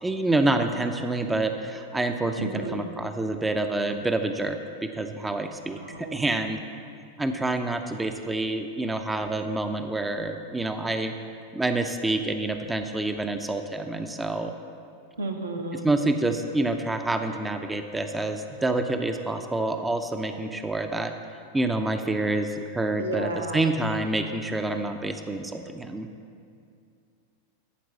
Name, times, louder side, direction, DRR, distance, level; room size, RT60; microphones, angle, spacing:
voice 1, 0.0-6.6 7.2-11.1 11.5-14.5 15.7-21.1 21.5-26.1, right 2 dB, 10° right, 6 dB, 0.5 m, -27 dB
voice 2, 2.4-2.9 5.8-6.2 15.2-15.9 23.0-23.7, right 1 dB, 75° right, 2 dB, 1.0 m, -32 dB
11.5 x 4.6 x 7.0 m, 2.4 s
figure-of-eight pair, 90°, 0 cm